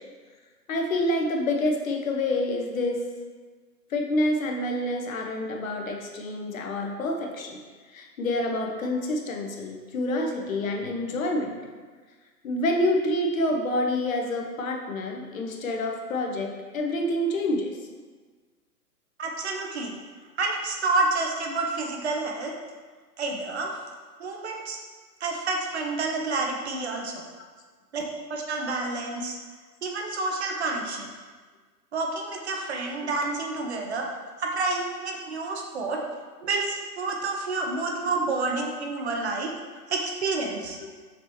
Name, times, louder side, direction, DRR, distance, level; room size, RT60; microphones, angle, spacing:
voice 1, 0.7-3.0 3.9-7.6 7.9-11.6 12.4-17.8 38.0-38.1 38.9-39.0, left 1 dB, 55° left, 2 dB, 0.8 m, -27 dB
voice 2, 19.2-20.0 20.4-22.5 23.2-23.8 24.2-24.8 25.2-27.1 27.9-28.0 28.3-29.4 29.8-31.1 31.9-34.1 34.4-36.0 36.4-39.5 39.9-40.8, right 3 dB, 40° right, 1 dB, 0.6 m, -29 dB
6.1 x 2.9 x 3.0 m, 1.4 s
hypercardioid pair, 135°, 50 cm